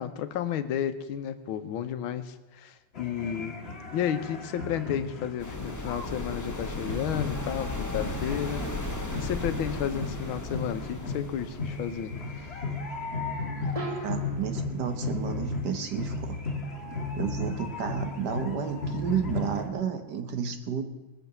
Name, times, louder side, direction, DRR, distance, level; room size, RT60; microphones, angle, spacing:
voice 1, 0.0-3.6 3.9-8.7 9.2-12.6 13.7-14.0, left 9 dB, 75° left, 10 dB, 1.6 m, -32 dB
sound 1, 2.9-19.7, left 3 dB, 30° left, 1.5 m, -35 dB
sound 2, 5.4-13.0, left 2 dB, 10° left, 0.8 m, -36 dB
sound 3, 9.2-9.8 13.7-14.7, right 2 dB, 20° right, 1.2 m, -39 dB
voice 2, 14.0-16.4 17.2-20.8, right 7 dB, 55° right, 8 dB, 1.6 m, -31 dB
19.5 x 7.0 x 6.8 m, 1.1 s
omnidirectional pair, 2.4 m